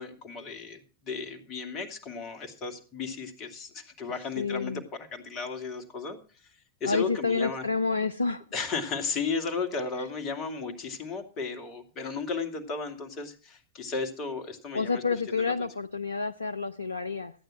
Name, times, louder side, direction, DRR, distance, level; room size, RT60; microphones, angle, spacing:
voice 1, 0.0-7.6 8.5-15.5, left 4 dB, 35° left, 7 dB, 2.4 m, -35 dB
voice 2, 4.4-4.8 6.9-8.4 14.7-17.3, left 4 dB, 80° left, 10 dB, 0.6 m, -29 dB
14.0 x 9.2 x 5.9 m, 0.37 s
figure-of-eight pair, 90°, 0 cm